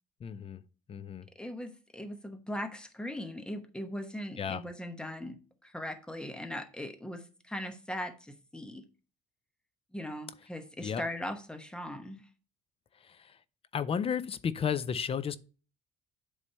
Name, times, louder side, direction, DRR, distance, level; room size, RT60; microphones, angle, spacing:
voice 1, 0.2-0.6 0.9-1.3 4.4-4.6 10.8-11.0 13.7-15.4, left 7 dB, 35° left, 0.5 m, -32 dB
voice 2, 1.4-8.8 9.9-12.2, left 1 dB, 5° left, 1.0 m, -39 dB
8.4 x 3.2 x 5.4 m
cardioid pair, 110°, 17 cm